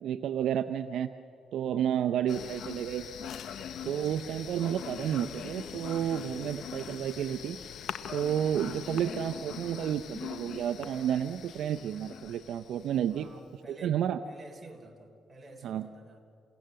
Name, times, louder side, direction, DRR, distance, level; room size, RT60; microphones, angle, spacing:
voice 1, 0.0-1.1 1.5-3.0 3.8-7.6 8.1-13.3 13.7-14.2 15.6-15.9, right 9 dB, 75° right, 8 dB, 0.6 m, -31 dB
sound 1, 2.3-13.5, left 8 dB, 70° left, 1.0 m, -42 dB
voice 2, 13.2-16.3, right 2 dB, 20° right, 3 dB, 3.5 m, -50 dB
29.0 x 17.0 x 7.7 m, 2.5 s
cardioid pair, 90°, 0 cm